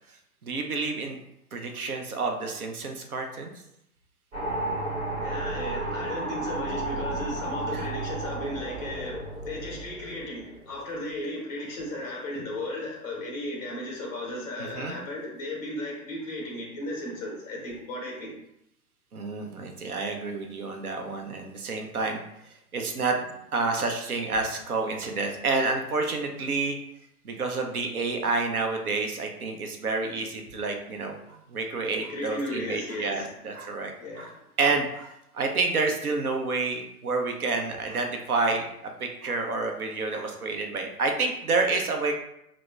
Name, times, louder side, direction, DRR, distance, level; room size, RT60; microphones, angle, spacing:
voice 1, 0.4-1.2 1.5-3.5 7.7-7.9 14.6-15.0 19.1-22.2 22.7-23.2 23.5-26.8 27.2-31.2 31.5-33.9 34.2-34.3 34.6-38.7 39.0-42.1, right 3 dB, 70° right, 4 dB, 0.7 m, -29 dB
sound 1, 4.3-10.8, right 2 dB, 55° right, 1.3 m, -33 dB
voice 2, 5.2-18.3 32.1-33.3 34.0-34.3, left 1 dB, 10° left, -2 dB, 0.4 m, -35 dB
2.9 x 2.1 x 3.4 m, 0.79 s
figure-of-eight pair, 115°, 46 cm